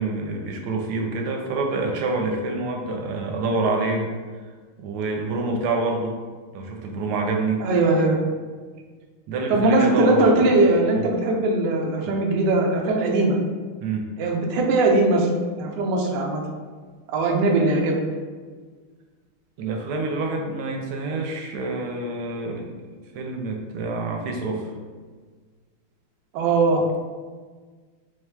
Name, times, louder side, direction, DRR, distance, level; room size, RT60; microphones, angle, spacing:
voice 1, 0.0-4.1 4.8-6.2 6.5-7.7 9.3-10.5 10.9-11.1 12.0-12.1 13.8-14.1 19.6-24.7, right 3 dB, 90° right, 2 dB, 1.5 m, -27 dB
voice 2, 7.6-8.2 9.5-13.4 14.2-15.3 15.6-16.4 17.1-18.0 26.3-26.8, right 2 dB, 70° right, 0 dB, 1.1 m, -20 dB
4.9 x 3.0 x 2.2 m, 1.5 s
omnidirectional pair, 2.3 m